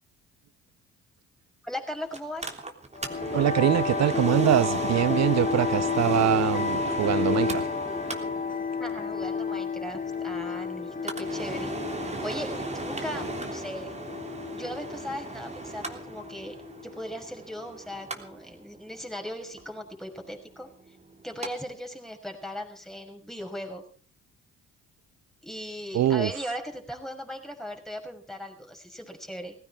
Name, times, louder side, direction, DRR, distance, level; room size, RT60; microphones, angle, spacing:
voice 1, 1.6-2.5 8.8-11.7 12.2-14.0 14.5-16.6 16.8-20.7 21.2-23.8 25.4-29.5, equal, ahead, 6.0 m, -38 dB
Mechanical fan, 2.1-21.5 21.8-21.9, right 3 dB, 20° right, 3.3 m, -37 dB
sound 1, 3.0-17.1, left 5 dB, 25° left, 1.7 m, -31 dB
voice 2, 3.3-7.7 25.9-26.3, right 12 dB, 50° right, 0.9 m, -24 dB
18.5 x 16.0 x 4.7 m
hypercardioid pair, 50°, 33 cm